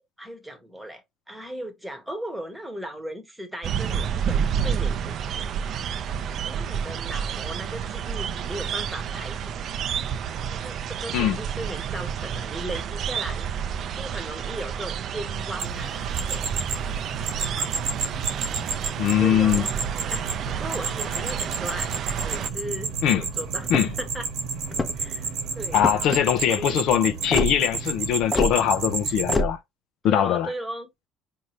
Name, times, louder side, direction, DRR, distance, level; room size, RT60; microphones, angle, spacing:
voice 1, 0.2-6.1 6.4-9.7 10.5-13.5 13.9-16.5 17.2-17.7 19.2-19.7 20.1-21.9 22.2-24.3 24.9-25.8 26.4-26.8 27.2-27.3 30.0-30.9, right 1 dB, 5° right, 1.1 m, -37 dB
sound 1, 3.6-22.5, right 8 dB, 45° right, 0.4 m, -30 dB
sound 2, 15.6-29.4, right 5 dB, 60° right, 1.1 m, -31 dB
voice 2, 19.0-19.7 23.0-23.3 23.7-23.9 25.7-29.6 30.0-30.5, left 10 dB, 65° left, 0.6 m, -22 dB
sound 3, 23.6-24.1 24.7-25.1 25.8-26.2 27.3-27.5 28.3-28.5 29.3-29.5, left 2 dB, 15° left, 0.8 m, -25 dB
5.1 x 2.8 x 3.0 m
cardioid pair, 130°, 0 cm